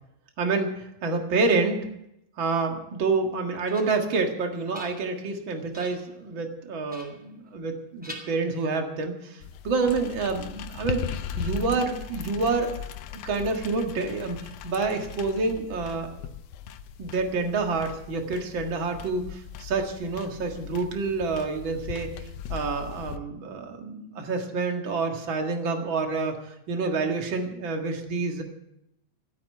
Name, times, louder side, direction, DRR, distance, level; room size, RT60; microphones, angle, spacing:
voice 1, 0.4-1.9 2.4-11.0 11.4-12.7 13.1-16.3 17.0-26.4 26.7-28.4, right 4 dB, 40° right, 3 dB, 2.0 m, -28 dB
sound 1, 3.2-4.1 4.5-5.3 5.7-6.2 6.9-7.7 8.0-9.0, left 1 dB, 5° right, 2.8 m, -46 dB
sound 2, 9.4-23.2, left 8 dB, 80° left, 2.5 m, -39 dB
15.0 x 8.5 x 8.9 m, 0.80 s
omnidirectional pair, 4.2 m